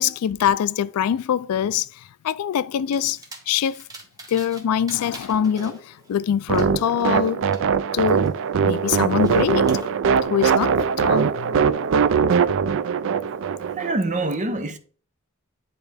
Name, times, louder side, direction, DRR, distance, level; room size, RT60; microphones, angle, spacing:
voice 1, 0.0-3.2 3.5-3.8 4.3-7.4 7.9-8.3 8.6-9.7 10.3-11.7, left 9 dB, 80° left, 0.3 m, -24 dB
sound 1, 2.9-4.6 4.9-7.6 8.1-9.9, right 2 dB, 15° right, 1.2 m, -43 dB
sound 2, 6.5-13.9, right 6 dB, 60° right, 0.4 m, -21 dB
voice 2, 13.8-14.8, right 2 dB, 35° right, 0.7 m, -25 dB
10.5 x 3.6 x 3.4 m
head